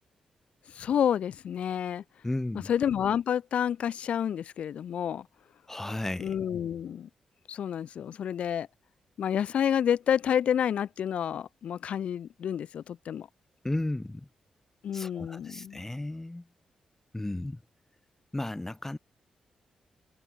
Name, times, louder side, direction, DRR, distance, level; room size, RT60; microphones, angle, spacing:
voice 1, 0.7-2.0 2.5-5.3 6.2-7.1 7.5-8.7 9.2-13.3 14.8-15.8, left 9 dB, 75° left, 2.1 m, -29 dB
voice 2, 2.2-2.7 5.7-6.3 13.6-14.3 14.9-16.5 17.1-17.6 18.3-19.0, left 1 dB, 15° left, 4.4 m, -34 dB
supercardioid pair, 55°, 2 cm